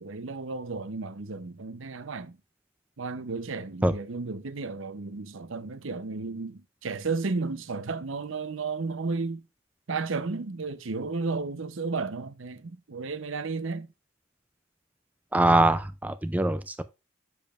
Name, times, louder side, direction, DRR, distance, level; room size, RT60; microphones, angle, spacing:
voice 1, 0.0-2.4 3.0-9.4 9.9-13.9, right 4 dB, 70° right, 0.7 m, -33 dB
voice 2, 15.3-16.8, right 1 dB, 5° right, 0.3 m, -23 dB
7.3 x 6.9 x 2.4 m
head